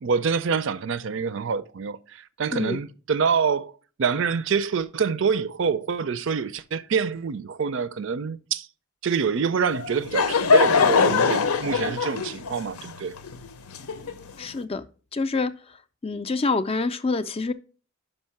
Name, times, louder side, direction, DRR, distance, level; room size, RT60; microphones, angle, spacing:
voice 1, 0.0-3.7 4.0-8.7 9.0-13.1, right 6 dB, 55° right, 0.4 m, -26 dB
Laughter / Crowd, 9.7-14.4, left 5 dB, 85° left, 0.7 m, -22 dB
voice 2, 14.4-14.8 15.1-15.5 16.0-17.5, left 3 dB, 25° left, 0.3 m, -26 dB
5.5 x 5.4 x 5.6 m
head